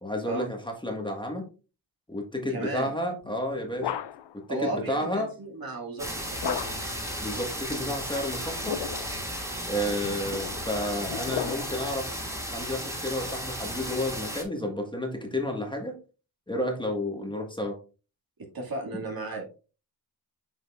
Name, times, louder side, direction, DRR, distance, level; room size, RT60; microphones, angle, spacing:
voice 1, 0.0-1.5 2.1-3.9 4.3-5.3 7.2-8.8 9.7-12.1 12.5-16.0 16.5-17.8, left 1 dB, 10° left, 2 dB, 1.7 m, -31 dB
voice 2, 2.5-2.9 4.5-6.6 9.9-10.0 18.4-19.5, right 2 dB, 50° right, 0 dB, 2.3 m, -34 dB
sound 1, 3.2-4.4 6.4-7.0 8.4-9.2 10.0-12.0, left 10 dB, 70° left, 0.6 m, -35 dB
sound 2, 6.0-14.4, equal, 5° right, 2.4 m, -34 dB
8.0 x 5.1 x 2.5 m, 0.33 s
cardioid pair, 70°, 44 cm